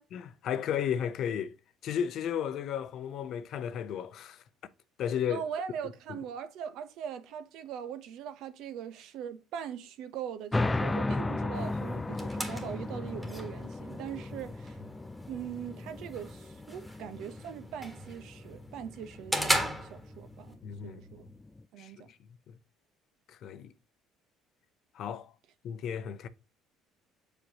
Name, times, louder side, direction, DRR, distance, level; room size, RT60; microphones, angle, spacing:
voice 1, 0.1-1.5 1.8-4.4 5.0-5.4 20.6-21.0 21.8-21.9 22.5-22.6 23.4-23.7 24.9-25.3 25.6-26.3, left 8 dB, 60° left, 0.7 m, -33 dB
voice 2, 5.3-14.8 15.3-19.6 19.9-21.3 21.7-22.1, right 8 dB, 70° right, 0.9 m, -41 dB
sound 1, 10.5-21.6, left 2 dB, 15° left, 0.4 m, -36 dB
sound 2, 11.5-20.5, equal, 5° right, 1.5 m, -38 dB
6.7 x 5.0 x 2.9 m
cardioid pair, 110°, 0 cm